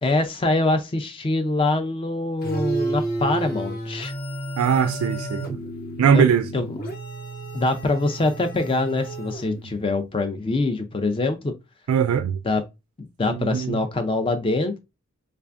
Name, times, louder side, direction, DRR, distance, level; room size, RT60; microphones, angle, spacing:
voice 1, 0.0-4.1 6.1-6.3 6.5-6.8 7.5-11.5 12.4-12.6 13.2-14.8, left 2 dB, 25° left, 0.4 m, -24 dB
sound 1, 2.4-9.9, right 2 dB, 45° left, 0.8 m, -31 dB
voice 2, 4.6-5.6 6.0-6.5 11.9-12.4 13.3-13.8, right 7 dB, 80° right, 0.3 m, -21 dB
3.4 x 3.3 x 2.4 m
head